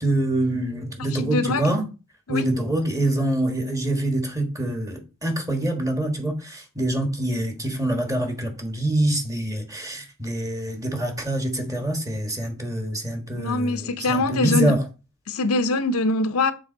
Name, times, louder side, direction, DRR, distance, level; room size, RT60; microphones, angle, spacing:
voice 1, 0.0-1.8 2.3-14.8, right 1 dB, 15° right, 1.5 m, -25 dB
voice 2, 1.1-1.6 2.3-2.4 13.3-14.7 15.3-16.5, left 3 dB, 70° left, 0.7 m, -23 dB
7.2 x 3.6 x 5.1 m
head